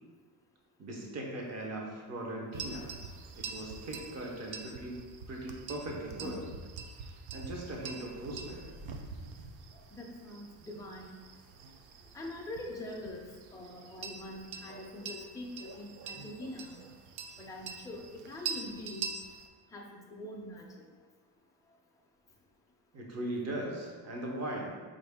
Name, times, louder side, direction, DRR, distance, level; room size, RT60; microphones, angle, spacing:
voice 1, 0.8-2.9 3.3-5.0 5.3-6.4 7.0-8.8 22.9-24.7, right 1 dB, 35° right, -1 dB, 0.7 m, -39 dB
sound 1, 2.5-19.5, right 5 dB, 90° right, 0.6 m, -45 dB
voice 2, 9.9-11.2 12.1-13.2 13.5-16.8 17.4-19.1 19.7-20.7, left 1 dB, 10° left, -2 dB, 0.3 m, -43 dB
4.8 x 2.5 x 3.4 m, 1.5 s
cardioid pair, 160°, 45 cm